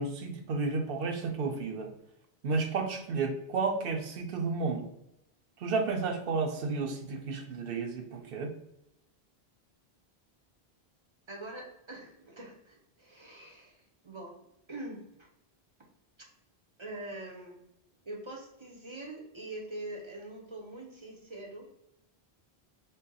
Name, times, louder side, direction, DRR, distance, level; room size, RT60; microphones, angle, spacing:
voice 1, 0.0-1.9 2.4-4.9 5.6-8.5, right 4 dB, 65° right, 5 dB, 0.8 m, -32 dB
voice 2, 11.3-14.4 14.7-15.0 16.8-17.6 18.1-21.7, right 1 dB, 30° right, 0 dB, 0.7 m, -43 dB
3.9 x 2.1 x 3.9 m, 0.83 s
omnidirectional pair, 1.1 m